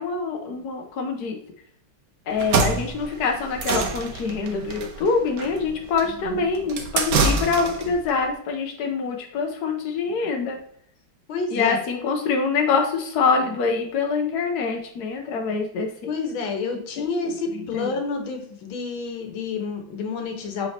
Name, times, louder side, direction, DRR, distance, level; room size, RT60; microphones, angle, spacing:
voice 1, 0.0-1.4 2.3-10.6 11.5-16.1 17.7-17.9, left 4 dB, 65° left, 3 dB, 1.2 m, -25 dB
sound 1, 2.3-8.0, right 4 dB, 60° right, 1.1 m, -26 dB
voice 2, 6.1-6.5 11.3-11.8 16.1-20.7, left 4 dB, 80° left, 4 dB, 1.9 m, -29 dB
8.3 x 4.1 x 2.7 m, 0.67 s
omnidirectional pair, 2.1 m